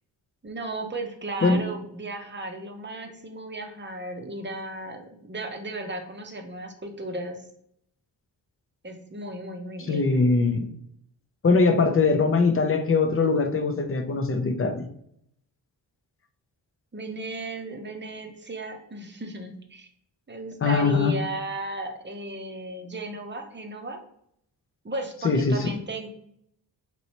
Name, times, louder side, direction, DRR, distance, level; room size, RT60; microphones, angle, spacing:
voice 1, 0.4-7.4 8.8-10.2 16.9-19.9 20.3-24.0 24.8-26.1, right 2 dB, 25° right, 4 dB, 0.7 m, -35 dB
voice 2, 9.9-10.6 11.4-14.9 20.6-21.1 25.2-25.7, left 4 dB, 30° left, 7 dB, 0.6 m, -21 dB
2.9 x 2.9 x 2.9 m, 0.71 s
supercardioid pair, 40°, 47 cm